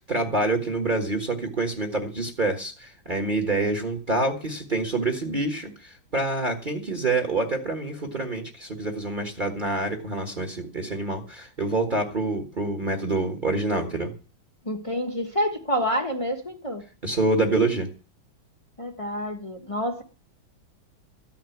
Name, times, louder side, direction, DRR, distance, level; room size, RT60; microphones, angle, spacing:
voice 1, 0.0-14.1 17.0-17.9, right 2 dB, 25° right, 1.6 m, -26 dB
voice 2, 14.6-16.8 18.8-20.0, equal, 20° left, 1.2 m, -28 dB
14.5 x 5.9 x 9.2 m
omnidirectional pair, 2.2 m